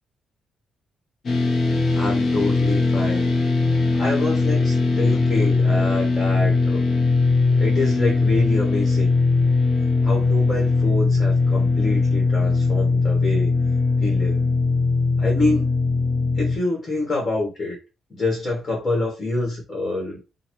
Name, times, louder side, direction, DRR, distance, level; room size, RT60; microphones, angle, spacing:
sound 1, 1.2-16.6, left 3 dB, 45° left, 1.0 m, -20 dB
voice 1, 1.9-3.3 3.9-6.8 7.6-9.1 10.0-13.5 14.0-14.4 15.2-15.7 16.3-17.8 18.1-20.2, left 2 dB, 30° left, -2 dB, 1.7 m, -26 dB
4.0 x 2.4 x 3.1 m, 0.28 s
cardioid pair, 100°, 0 cm